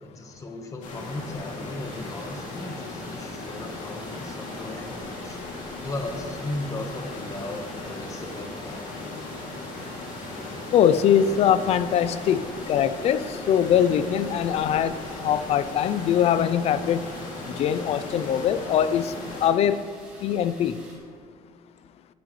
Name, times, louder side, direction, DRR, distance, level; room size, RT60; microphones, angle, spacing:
voice 1, 0.0-5.4 5.8-9.0, left 2 dB, 25° left, 4 dB, 1.2 m, -36 dB
sound 1, 0.8-19.5, left 2 dB, 70° left, 2.6 m, -37 dB
sound 2, 1.8-21.0, right 1 dB, 10° right, 2.9 m, -50 dB
voice 2, 10.7-17.0 17.6-19.1 19.4-19.8 20.2-20.8, left 9 dB, 50° left, 14 dB, 0.4 m, -22 dB
16.0 x 10.0 x 3.2 m, 2.1 s
cardioid pair, 165°, 14 cm